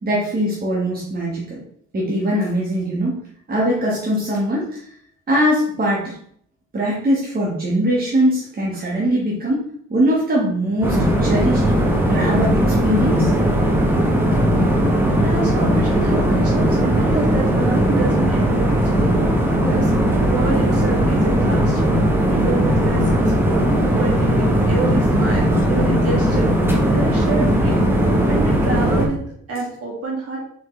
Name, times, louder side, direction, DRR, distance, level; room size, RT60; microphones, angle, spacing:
voice 1, 0.0-1.6 1.9-4.8 5.3-6.1 6.7-9.6 9.9-11.6 12.1-13.3, equal, 30° right, -5 dB, 1.4 m, -21 dB
sound 1, 10.8-29.1, equal, 5° right, 1.0 m, -18 dB
voice 2, 15.2-18.7 19.0-19.2 19.6-19.9 20.2-21.9 22.3-26.5 26.9-27.8 28.2-29.2 29.5-30.4, right 4 dB, 50° right, -3 dB, 2.1 m, -28 dB
4.2 x 4.0 x 3.1 m, 0.63 s
cardioid pair, 90°, 30 cm